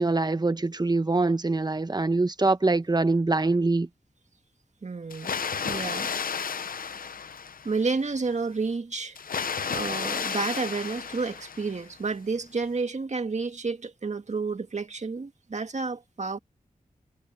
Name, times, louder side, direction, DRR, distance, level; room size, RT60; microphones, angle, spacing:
voice 1, 0.0-3.9, right 3 dB, 30° right, 1.2 m, -24 dB
voice 2, 4.8-5.3 5.6-6.1 7.6-9.2 9.6-16.4, right 4 dB, 50° right, 1.9 m, -30 dB
Water, 5.1-7.9 9.2-12.0, left 6 dB, 75° left, 0.7 m, -32 dB
cardioid pair, 55°, 15 cm